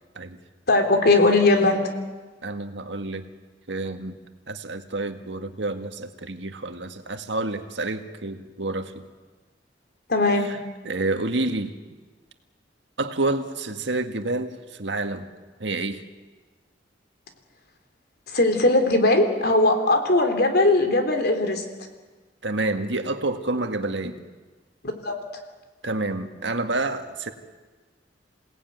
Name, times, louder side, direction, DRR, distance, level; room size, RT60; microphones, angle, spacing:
voice 1, 0.7-1.8 10.1-10.5 18.3-21.6 25.0-25.2, left 2 dB, 60° left, 6 dB, 3.5 m, -19 dB
voice 2, 2.4-3.3 3.7-4.2 4.5-9.0 10.5-10.6 10.8-11.8 13.0-15.3 15.6-16.0 22.4-24.2 25.8-27.3, right 2 dB, 75° right, 7 dB, 1.9 m, -28 dB
28.0 x 18.0 x 9.4 m, 1.3 s
head